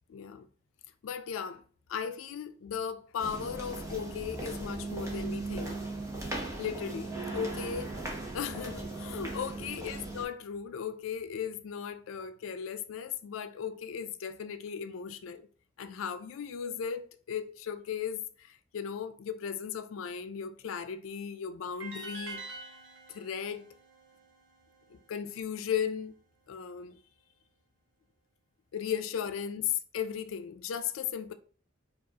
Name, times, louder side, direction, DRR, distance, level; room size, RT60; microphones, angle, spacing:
voice 1, 0.1-0.5 1.0-1.6 1.9-5.8 6.6-7.9 8.2-15.5 15.8-22.4 23.1-23.7 24.9-26.1 26.5-27.0 28.7-31.3, left 7 dB, 85° left, 0.4 m, -36 dB
sound 1, 3.2-10.2, right 2 dB, 15° right, 0.8 m, -38 dB
sound 2, 21.8-24.9, right 3 dB, 90° right, 0.9 m, -46 dB
4.6 x 2.4 x 2.8 m
head